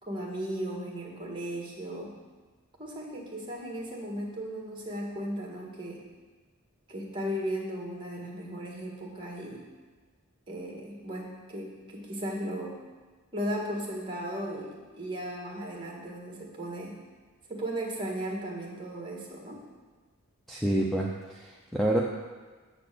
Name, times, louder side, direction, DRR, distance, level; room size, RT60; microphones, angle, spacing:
voice 1, 0.0-2.2 2.8-6.0 6.9-9.7 10.5-12.8 13.3-17.0 17.5-19.6, equal, 25° right, -1 dB, 1.6 m, -36 dB
voice 2, 20.5-22.0, right 1 dB, ahead, -3 dB, 0.5 m, -28 dB
7.6 x 4.2 x 6.7 m, 1.4 s
head